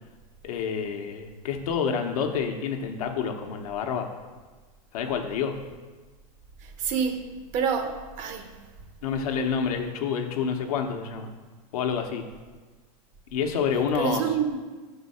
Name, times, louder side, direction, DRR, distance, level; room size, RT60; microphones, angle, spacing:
voice 1, 0.4-4.1 4.9-5.5 9.0-11.3 11.7-12.2 13.3-14.2, left 6 dB, 80° left, 0.9 m, -28 dB
voice 2, 6.6-7.2 7.5-8.5 13.9-14.6, right 7 dB, 40° right, 0.7 m, -27 dB
6.3 x 4.0 x 5.4 m
supercardioid pair, 140°, 19 cm